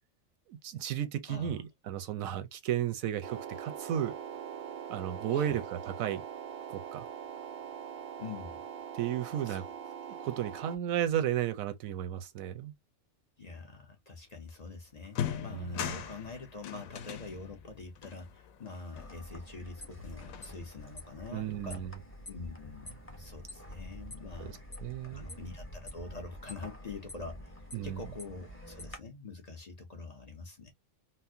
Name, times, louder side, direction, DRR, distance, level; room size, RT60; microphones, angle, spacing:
voice 1, 0.5-4.1 4.9-6.2 6.7-7.0 8.9-9.6 10.2-12.7 15.5-15.9 21.3-21.9 24.4-24.5 24.8-25.4 27.7-28.0, right 10 dB, 85° right, 1.1 m, -34 dB
voice 2, 1.3-1.6 5.3-5.6 8.2-8.6 9.4-9.6 13.4-21.8 22.3-24.6 25.1-30.7, left 3 dB, 40° left, 0.7 m, -45 dB
sound 1, 3.2-10.8, right 8 dB, 60° right, 0.6 m, -42 dB
sound 2, 14.5-14.6 15.0-19.6 20.0-20.9, left 9 dB, 85° left, 1.1 m, -41 dB
sound 3, 18.9-29.0, left 1 dB, 10° left, 0.9 m, -47 dB
4.2 x 2.0 x 2.6 m
omnidirectional pair, 1.4 m